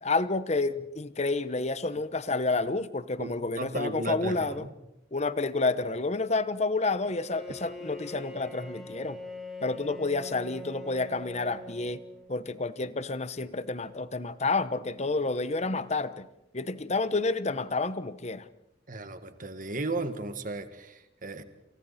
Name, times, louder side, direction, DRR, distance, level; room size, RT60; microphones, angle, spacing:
voice 1, 0.0-4.6 5.1-9.2 9.6-12.0 12.3-16.3 16.5-18.5, left 3 dB, 35° left, 14 dB, 1.0 m, -29 dB
voice 2, 3.2-4.7 18.9-21.4, right 2 dB, 45° right, 9 dB, 1.8 m, -35 dB
Bowed string instrument, 7.0-12.5, equal, ahead, 5.3 m, -43 dB
29.0 x 28.5 x 4.3 m, 0.91 s
head